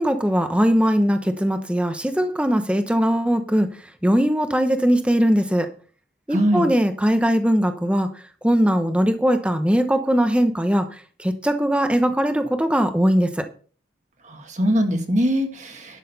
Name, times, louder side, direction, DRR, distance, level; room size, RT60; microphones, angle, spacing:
voice 1, 0.0-3.7 4.0-5.7 6.3-8.1 8.4-10.9 11.2-13.4, equal, 5° right, 8 dB, 0.8 m, -20 dB
voice 2, 6.3-6.7 14.3-16.0, equal, 40° right, 5 dB, 1.7 m, -22 dB
11.5 x 6.5 x 5.5 m, 0.41 s
head